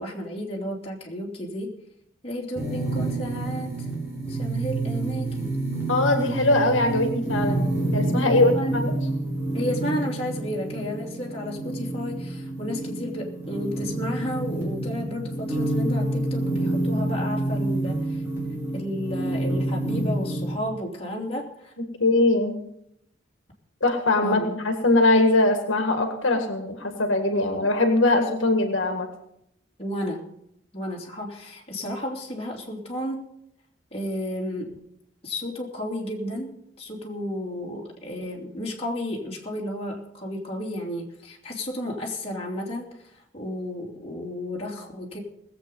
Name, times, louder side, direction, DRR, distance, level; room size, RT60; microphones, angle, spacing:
voice 1, 0.0-1.7 2.2-3.9 4.3-5.6 8.1-8.7 9.5-18.2 18.7-21.7 24.2-24.5 29.8-30.3 30.7-33.3 33.9-34.9 35.2-36.5 36.8-45.2, left 1 dB, 30° left, -2 dB, 2.9 m, -32 dB
sound 1, 2.6-20.6, right 2 dB, 15° right, 4.7 m, -28 dB
voice 2, 5.9-7.7 7.9-8.9 21.8-22.6 23.8-29.1, left 2 dB, 80° left, 5 dB, 1.7 m, -21 dB
20.0 x 8.0 x 5.4 m, 0.77 s
head